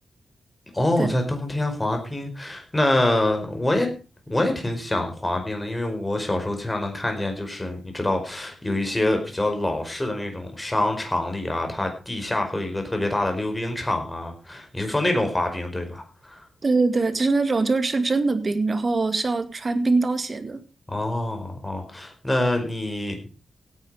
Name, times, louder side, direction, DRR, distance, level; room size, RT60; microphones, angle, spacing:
voice 1, 0.7-3.9 4.3-16.4 20.9-23.3, left 1 dB, 15° left, 4 dB, 4.9 m, -26 dB
voice 2, 16.6-20.6, right 3 dB, 35° right, 10 dB, 2.0 m, -23 dB
17.0 x 9.9 x 5.0 m, 0.34 s
wide cardioid pair, 115°, 0 cm